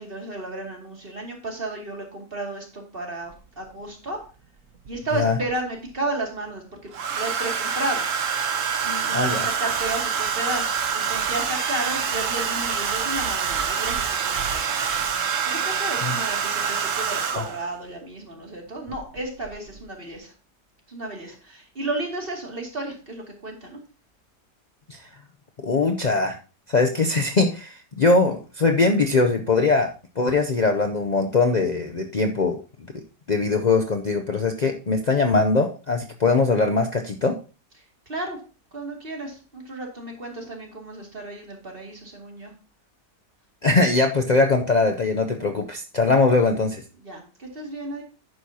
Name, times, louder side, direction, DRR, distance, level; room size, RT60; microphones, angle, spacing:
voice 1, 0.0-4.2 4.9-8.0 8.8-15.0 15.4-20.3 20.9-23.8 38.1-38.4 38.7-42.5 47.0-48.0, right 2 dB, 30° right, 0 dB, 2.7 m, -33 dB
Domestic sounds home sounds, 3.3-3.4 4.8-5.5 6.9-17.7 18.9-19.2 19.4-19.8, right 7 dB, 55° right, 1.2 m, -26 dB
voice 2, 9.1-9.5 16.0-16.1 24.9-25.0 25.6-26.4 26.7-29.9 30.2-33.0 33.3-37.4 43.6-46.8, left 3 dB, 70° left, 4 dB, 0.4 m, -21 dB
11.0 x 9.4 x 2.9 m, 0.35 s
omnidirectional pair, 1.8 m